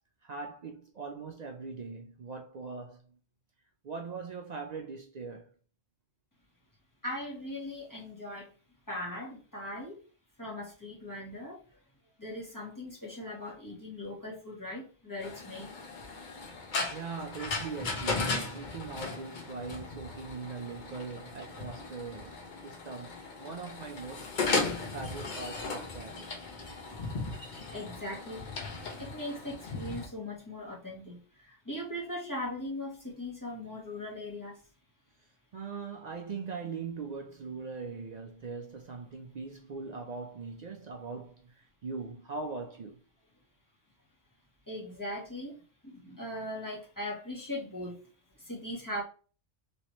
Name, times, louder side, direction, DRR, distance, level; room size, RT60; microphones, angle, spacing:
voice 1, 0.2-3.2 3.8-5.5 16.4-16.5 16.9-23.1 23.4-24.3 24.9-26.3 35.5-43.0, right 4 dB, 85° right, 0.3 m, -41 dB
voice 2, 7.0-8.5 8.9-10.0 10.4-11.6 12.2-15.7 27.7-28.4 29.0-31.2 31.5-34.6 44.7-45.6 45.8-48.0 48.5-49.0, left 1 dB, 15° left, 1.1 m, -39 dB
sound 1, 15.2-30.1, left 3 dB, 45° left, 0.8 m, -37 dB
3.2 x 3.0 x 2.9 m
omnidirectional pair, 1.3 m